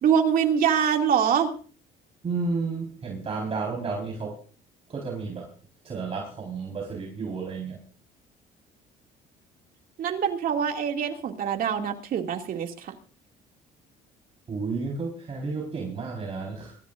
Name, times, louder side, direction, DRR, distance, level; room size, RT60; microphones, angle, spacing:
voice 1, 0.0-1.5 10.0-12.9, right 8 dB, 60° right, 3 dB, 2.4 m, -24 dB
voice 2, 2.2-4.4 4.9-5.5 5.8-7.8 14.5-16.8, right 4 dB, 35° right, -1 dB, 4.4 m, -32 dB
24.5 x 14.0 x 2.6 m, 0.40 s
cardioid pair, 110°, 17 cm